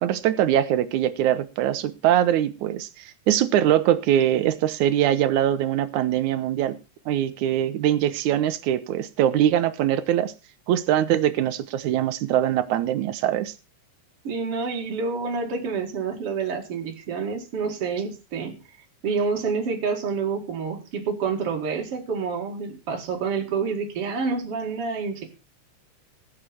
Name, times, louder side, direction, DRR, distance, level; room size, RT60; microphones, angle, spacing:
voice 1, 0.0-6.8 7.1-10.3 10.7-13.5, right 11 dB, 85° right, 12 dB, 2.4 m, -22 dB
voice 2, 14.2-18.6 19.0-25.3, right 5 dB, 55° right, 2 dB, 2.9 m, -28 dB
20.0 x 6.7 x 4.4 m, 0.30 s
omnidirectional pair, 3.3 m